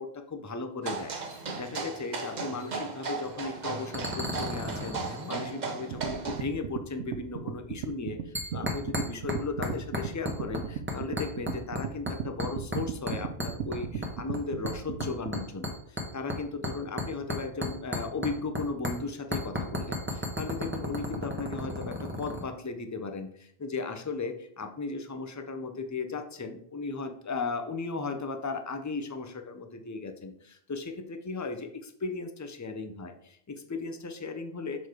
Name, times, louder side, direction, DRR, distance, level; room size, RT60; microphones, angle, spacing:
voice 1, 0.0-34.9, left 4 dB, 20° left, 7 dB, 0.5 m, -36 dB
sound 1, 0.8-6.4, right 4 dB, 45° right, 0.9 m, -36 dB
sound 2, 3.2-3.5 3.9-5.5 8.3-9.4 9.6-10.6 10.9-11.8 12.1-12.8 13.1-14.4 14.7-18.6 18.8-18.9 19.3-22.4, left 1 dB, 10° right, 1.1 m, -33 dB
sound 3, 5.9-15.4, right 7 dB, 90° right, 0.9 m, -36 dB
6.6 x 4.1 x 4.7 m, 0.66 s
omnidirectional pair, 1.1 m